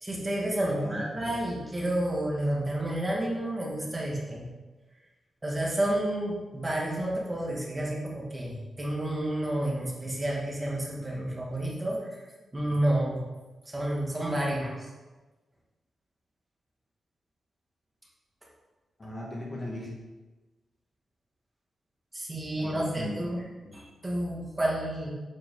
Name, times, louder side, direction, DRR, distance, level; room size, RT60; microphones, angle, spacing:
voice 1, 0.0-4.4 5.4-12.2 12.5-13.2 13.7-14.9 22.1-23.4 23.7-25.1, right 1 dB, 15° right, -4 dB, 2.2 m, -30 dB
voice 2, 0.6-1.3 19.0-19.9 22.6-23.8, left 1 dB, 20° left, -3 dB, 1.8 m, -39 dB
11.0 x 8.5 x 3.9 m, 1.2 s
wide cardioid pair, 165°, 0 cm